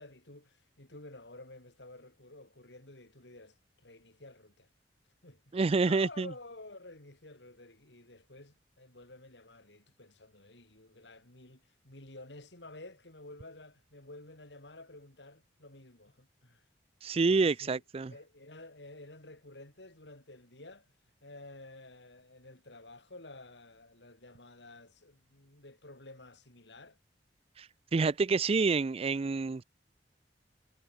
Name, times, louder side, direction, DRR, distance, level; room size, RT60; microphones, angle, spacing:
voice 1, 0.0-4.7 5.2-5.6 5.8-16.6 17.2-20.9 21.2-27.0, left 2 dB, 75° left, 4.9 m, -51 dB
voice 2, 5.5-6.3 17.0-18.1 27.6-27.7 27.9-29.6, right 4 dB, 35° right, 0.4 m, -28 dB
head